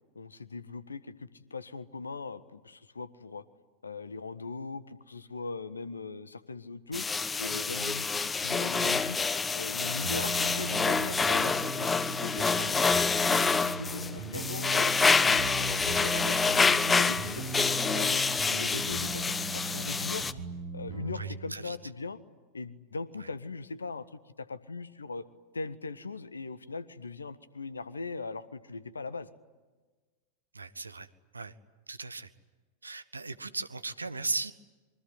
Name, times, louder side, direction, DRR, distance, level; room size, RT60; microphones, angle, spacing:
voice 1, 0.1-3.4 3.8-7.1 7.4-9.2 9.5-12.9 13.3-14.9 15.2-18.2 18.5-20.3 20.7-22.2 22.5-25.2 25.5-29.3, left 3 dB, 75° left, 16 dB, 1.3 m, -40 dB
sound 1, 6.9-20.3, left 4 dB, 15° left, 1.1 m, -27 dB
sound 2, 10.0-21.4, right 4 dB, 50° right, 6.9 m, -39 dB
voice 2, 21.1-21.8 23.2-23.3 30.5-31.1 31.3-31.5 31.9-32.3 32.8-34.5, right 3 dB, 80° right, 14 dB, 1.3 m, -37 dB
26.0 x 23.5 x 9.6 m, 1.3 s
figure-of-eight pair, 90°, 0 cm